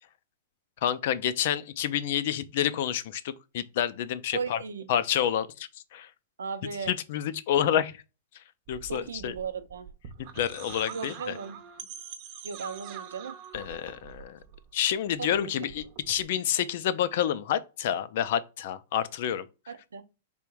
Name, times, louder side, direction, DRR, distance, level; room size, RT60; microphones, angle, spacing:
voice 1, 0.8-4.6 4.9-6.1 6.9-8.0 8.7-9.3 10.3-11.1 13.5-14.4 14.7-19.5, left 10 dB, 60° left, 0.5 m, -28 dB
voice 2, 4.3-5.0 6.4-7.0 8.9-9.9 10.9-11.6 12.4-13.4 15.2-15.7 19.7-20.0, right 5 dB, 90° right, 0.6 m, -36 dB
sound 1, 8.7-14.9 15.2-16.2, right 8 dB, 50° right, 0.7 m, -45 dB
3.5 x 2.5 x 4.6 m
hypercardioid pair, 120°, 0 cm